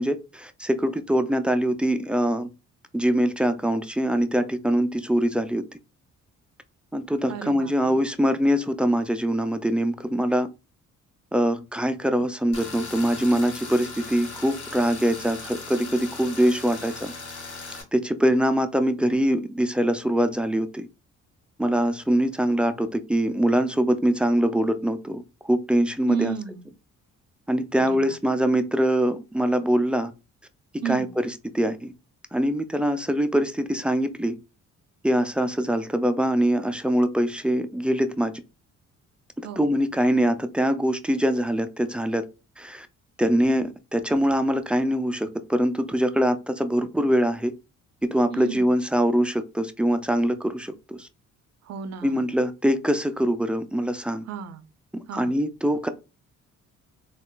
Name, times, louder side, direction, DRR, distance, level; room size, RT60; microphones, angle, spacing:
voice 1, 0.0-2.5 2.9-5.6 6.9-10.5 11.3-17.1 17.9-20.9 21.6-26.3 27.5-30.1 30.9-31.9 32.3-34.4 35.0-38.3 39.4-42.3 42.6-42.9 43.2-47.5 48.0-51.1 52.0-54.2 54.9-55.9, equal, 5° right, 0.3 m, -23 dB
voice 2, 7.3-8.0 24.4-24.8 26.1-26.7 27.8-28.2 30.8-31.1 39.4-39.7 48.3-48.7 51.6-52.3 54.3-54.7 55.1-55.4, right 8 dB, 60° right, 0.5 m, -33 dB
Tools, 12.5-17.8, left 3 dB, 75° left, 1.4 m, -38 dB
3.7 x 2.4 x 2.3 m
cardioid pair, 90°, 30 cm